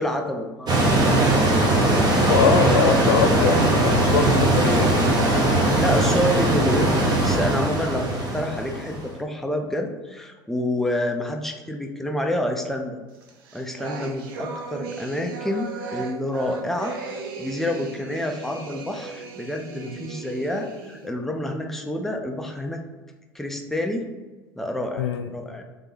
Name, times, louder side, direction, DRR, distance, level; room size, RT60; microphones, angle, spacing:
voice 1, 0.0-2.0 5.8-13.0 13.5-17.0 17.4-22.8 23.3-24.1 24.6-25.6, left 1 dB, 5° left, 3 dB, 0.5 m, -28 dB
sound 1, 0.7-9.1, right 2 dB, 35° right, 1.1 m, -20 dB
voice 2, 2.2-5.0 25.0-25.3, left 6 dB, 80° left, 7 dB, 0.4 m, -22 dB
sound 2, 13.2-21.1, right 4 dB, 75° right, 0.6 m, -37 dB
3.6 x 2.8 x 4.0 m, 1.3 s
hypercardioid pair, 80°, 12 cm